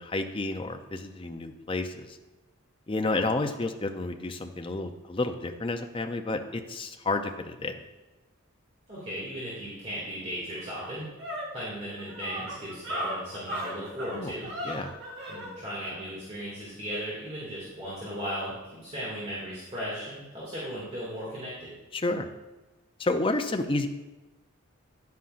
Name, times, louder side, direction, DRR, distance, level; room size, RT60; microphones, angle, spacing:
voice 1, 0.0-2.2 2.9-7.7 14.1-14.3 14.6-14.9 21.9-22.3 23.0-23.9, left 2 dB, 25° left, 6 dB, 0.5 m, -30 dB
voice 2, 8.9-11.1 11.5-14.5 15.3-21.7, equal, 30° right, -8 dB, 2.3 m, -37 dB
sound 1, 10.1-10.2 10.5-15.5, equal, 50° right, 1.7 m, -36 dB
10.0 x 9.4 x 2.5 m, 1.1 s
head